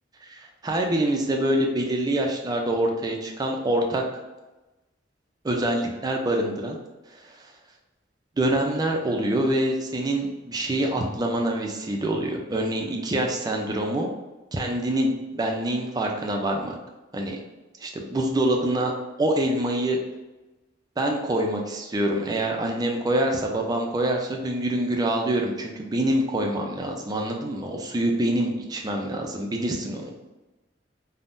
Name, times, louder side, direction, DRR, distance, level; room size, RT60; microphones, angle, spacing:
voice 1, 0.2-4.0 5.4-6.8 7.1-7.5 8.4-14.1 14.5-16.7 17.1-17.4 17.8-18.9 19.2-20.0 21.0-30.1, right 1 dB, 20° right, 1 dB, 0.4 m, -25 dB
3.5 x 2.1 x 2.5 m, 1.1 s
head